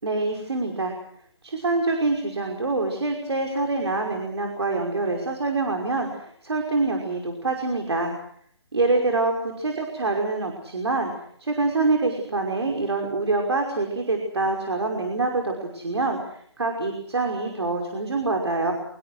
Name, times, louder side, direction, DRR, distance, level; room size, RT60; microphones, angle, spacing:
voice 1, 0.0-0.9 1.4-8.1 8.7-11.1 11.4-18.7, right 3 dB, 75° right, 2 dB, 5.7 m, -25 dB
26.0 x 22.0 x 6.5 m, 0.65 s
figure-of-eight pair, 155°, 14 cm